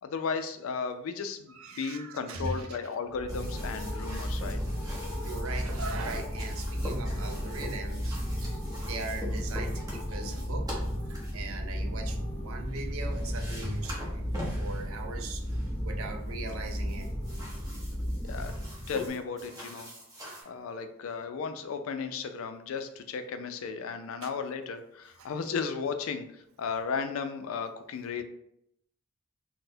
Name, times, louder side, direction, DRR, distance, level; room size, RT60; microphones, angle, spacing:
voice 1, 0.0-4.6 18.3-18.5 18.9-19.9 20.5-28.2, left 5 dB, 75° left, 8 dB, 0.4 m, -35 dB
voice 2, 1.5-2.8 5.2-8.5 8.8-10.8 11.1-14.3 14.6-15.4 15.8-17.1 24.2-24.3 25.2-25.3, right 3 dB, 90° right, 4 dB, 0.5 m, -40 dB
sound 1, 3.1-19.1, equal, 10° left, 0.6 m, -34 dB
sound 2, 3.3-11.3 12.7-12.8 13.1-14.8 15.4-15.7 16.5-20.4, equal, 20° right, 0.9 m, -43 dB
4.0 x 2.1 x 2.6 m, 0.76 s
head